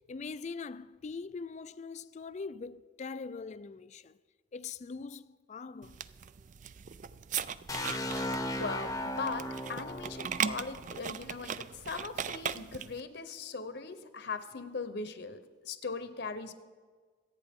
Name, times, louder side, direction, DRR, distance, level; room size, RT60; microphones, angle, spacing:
voice 1, 0.0-4.2 4.5-6.0, left 4 dB, 40° left, 0.4 m, -42 dB
sound 1, 5.8-13.0, right 8 dB, 40° right, 0.4 m, -39 dB
sound 2, 7.7-11.5, left 1 dB, 20° left, 0.8 m, -37 dB
voice 2, 8.5-16.5, left 4 dB, 60° left, 0.9 m, -39 dB
26.0 x 8.9 x 3.7 m
head